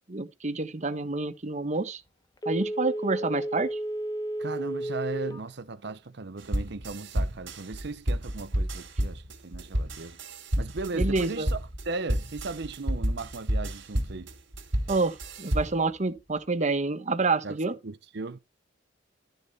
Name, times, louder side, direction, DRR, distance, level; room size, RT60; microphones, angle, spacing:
voice 1, 0.1-2.0 2.5-3.8 10.9-11.5 14.9-17.7, right 3 dB, 40° right, 1.2 m, -28 dB
Telephone, 2.4-5.5 5.9-6.0, right 1 dB, 20° left, 1.1 m, -32 dB
voice 2, 4.4-10.2 10.6-11.6 11.8-14.3 17.4-17.6 17.8-18.4, right 3 dB, 65° right, 0.8 m, -37 dB
sound 1, 6.4-15.9, equal, 85° right, 3.3 m, -31 dB
12.5 x 6.6 x 4.1 m
head